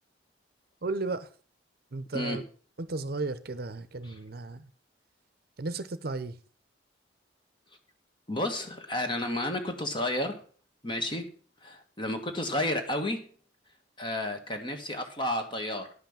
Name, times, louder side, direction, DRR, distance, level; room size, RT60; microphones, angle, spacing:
voice 1, 0.8-1.3 1.9-2.4 2.8-4.6 5.6-6.4, right 3 dB, 55° right, 13 dB, 0.7 m, -34 dB
voice 2, 8.3-10.4 10.8-11.3 11.6-13.2 14.0-15.9, left 1 dB, 25° left, 5 dB, 1.6 m, -31 dB
11.0 x 5.9 x 7.2 m, 0.42 s
head